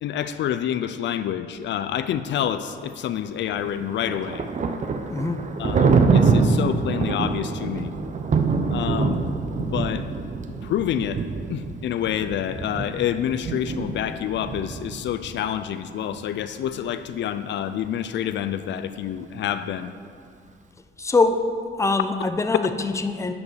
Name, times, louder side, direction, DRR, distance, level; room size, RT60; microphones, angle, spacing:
voice 1, 0.0-4.4 5.6-7.9 8.7-9.2 9.6-10.1 10.6-11.2 11.5-19.9, left 10 dB, 65° left, 10 dB, 0.4 m, -28 dB
Thunder, 3.6-15.4, right 4 dB, 40° right, 0.7 m, -25 dB
voice 2, 5.1-5.4 21.0-21.4 21.8-23.3, left 3 dB, 15° left, 7 dB, 0.6 m, -23 dB
9.4 x 5.2 x 6.3 m, 2.2 s
cardioid pair, 90°, 20 cm